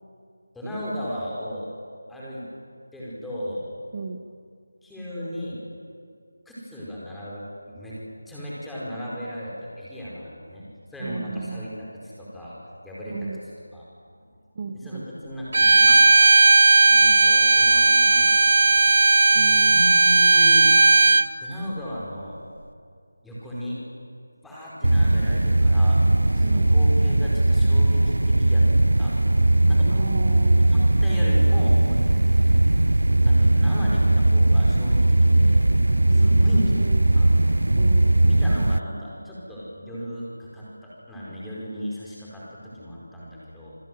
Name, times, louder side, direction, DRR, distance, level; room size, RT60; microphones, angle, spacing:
voice 1, 0.5-1.7 2.1-2.5 2.9-3.6 4.8-5.6 6.4-8.0 8.3-10.6 10.9-12.5 12.8-13.3 13.7-13.8 14.8-16.3 16.8-18.9 19.5-20.7 21.4-22.4 23.2-23.8 24.4-26.0 26.3-28.6 29.0-29.1 29.7-29.9 30.3-32.0 33.2-35.6 36.0-36.7 37.1-37.3 38.1-43.8, equal, ahead, -8 dB, 4.9 m, -35 dB
voice 2, 11.0-11.7 13.1-13.4 14.5-15.1 19.3-19.8 26.4-26.7 29.8-30.7 36.1-37.1 37.8-38.1, right 4 dB, 30° right, 5 dB, 1.3 m, -34 dB
Bowed string instrument, 15.5-21.3, right 3 dB, 60° right, 1.0 m, -16 dB
sound 1, 24.8-38.8, right 1 dB, 90° right, 0.7 m, -19 dB
28.0 x 19.5 x 9.4 m, 2.2 s
figure-of-eight pair, 170°, 0 cm